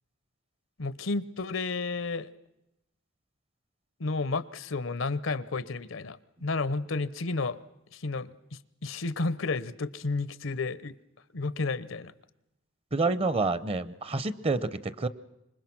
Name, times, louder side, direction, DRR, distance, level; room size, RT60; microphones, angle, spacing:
voice 1, 0.8-2.3 4.0-7.6 7.9-11.0 11.3-12.1, left 3 dB, 80° left, 18 dB, 0.9 m, -32 dB
voice 2, 12.9-15.1, right 3 dB, 30° right, 16 dB, 0.8 m, -28 dB
26.0 x 22.0 x 6.1 m, 0.88 s
head